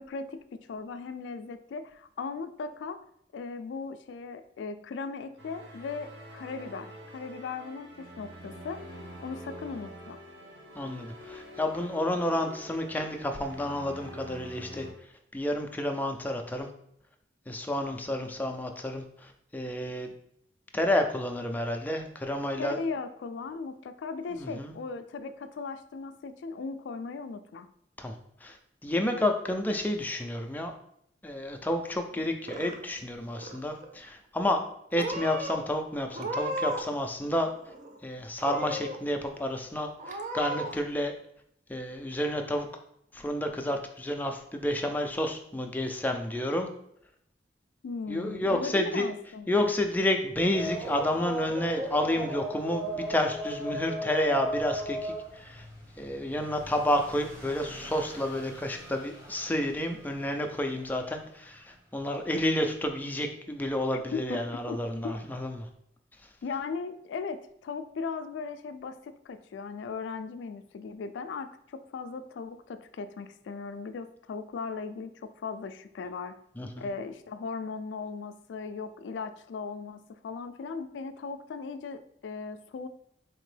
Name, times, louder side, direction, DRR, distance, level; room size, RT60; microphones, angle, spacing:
voice 1, 0.0-3.0 3.3-8.8 9.2-10.2 22.6-27.7 47.8-49.7 63.9-65.1 66.4-76.4 76.8-82.9, left 4 dB, 85° left, 10 dB, 0.3 m, -38 dB
sound 1, 5.4-14.9, equal, 80° right, 1.2 m, -46 dB
voice 2, 10.7-14.9 15.3-16.7 17.5-20.1 20.7-22.8 24.3-24.7 28.0-28.1 28.4-28.6 28.8-30.7 31.2-34.6 34.9-37.5 38.0-41.1 41.7-42.7 43.1-46.7 48.1-49.1 49.5-55.7 56.0-65.7 76.6-76.9, left 1 dB, 10° left, 4 dB, 0.4 m, -30 dB
Purr / Meow, 32.2-33.0 33.3-33.9 34.6-34.7 35.0-35.6 36.1-37.0 37.2-38.0 38.4-39.0 39.4-39.5 40.0-40.7, right 1 dB, 45° right, 0.5 m, -35 dB
sound 2, 50.5-60.4 60.8-60.9 62.1-62.2, equal, 15° right, 1.0 m, -37 dB
4.4 x 2.9 x 3.2 m, 0.72 s
head